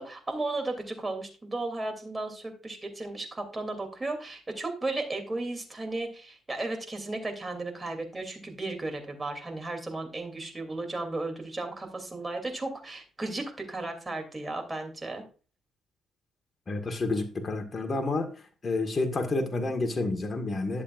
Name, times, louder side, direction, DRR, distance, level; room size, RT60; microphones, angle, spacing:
voice 1, 0.0-15.2, right 2 dB, 20° right, 4 dB, 2.9 m, -35 dB
voice 2, 16.7-18.3 18.6-20.8, left 2 dB, 35° left, 4 dB, 1.6 m, -29 dB
11.5 x 7.3 x 2.5 m, 0.36 s
cardioid pair, 90°, 0 cm